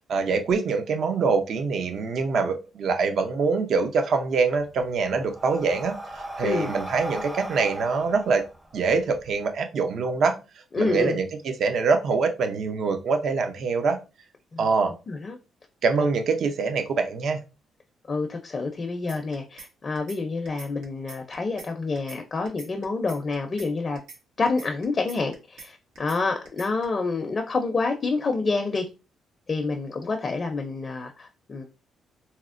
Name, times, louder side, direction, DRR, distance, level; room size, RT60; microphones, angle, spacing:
voice 1, 0.1-8.4 8.7-10.4 10.8-14.0 14.6-14.9 15.8-17.4, right 4 dB, 65° right, 0.5 m, -24 dB
Breathing, 4.6-9.3, right 1 dB, 10° right, 0.5 m, -37 dB
voice 2, 10.7-11.2 14.5-14.7 15.1-15.4 18.1-24.0 24.4-28.9 29.5-31.6, left 3 dB, 40° left, 0.5 m, -28 dB
sound 1, 19.1-19.7 20.0-20.2 20.5-21.7 22.0-22.2 22.5-23.7 24.0-24.2 24.5-25.7 26.0-26.2 26.5-26.8, right 4 dB, 90° right, 0.9 m, -44 dB
4.2 x 2.0 x 2.5 m
cardioid pair, 90°, 0 cm